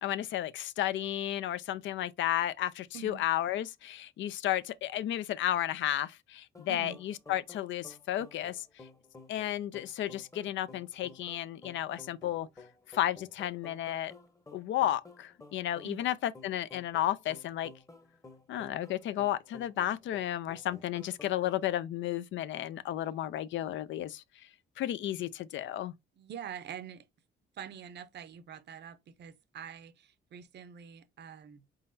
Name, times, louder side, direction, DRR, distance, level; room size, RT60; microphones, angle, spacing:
voice 1, 0.0-8.6 9.3-12.5 12.9-14.1 14.5-17.7 18.5-24.2 24.8-25.9, left 12 dB, 70° left, 0.4 m, -33 dB
sound 1, 6.5-21.6, left 3 dB, 15° left, 0.9 m, -54 dB
voice 2, 6.7-7.0 15.8-16.0 26.2-27.1 27.5-31.6, right 8 dB, 60° right, 0.7 m, -45 dB
4.1 x 3.9 x 2.6 m
cardioid pair, 90°, 20 cm